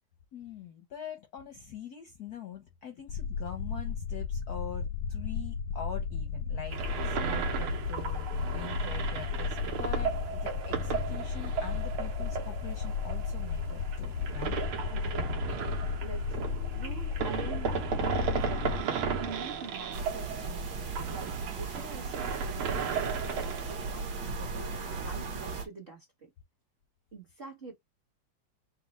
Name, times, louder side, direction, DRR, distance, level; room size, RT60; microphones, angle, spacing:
voice 1, 0.3-6.8 7.0-14.6, left 8 dB, 65° left, 1.0 m, -44 dB
sound 1, 3.1-18.8, left 6 dB, 90° left, 1.5 m, -34 dB
sound 2, 6.7-24.0, right 6 dB, 80° right, 1.7 m, -35 dB
voice 2, 14.9-15.5 16.0-21.3 21.6-26.3 27.1-27.7, right 4 dB, 35° right, 0.9 m, -46 dB
sound 3, 19.9-25.7, right 4 dB, 60° right, 1.6 m, -37 dB
4.1 x 2.3 x 4.0 m
omnidirectional pair, 2.4 m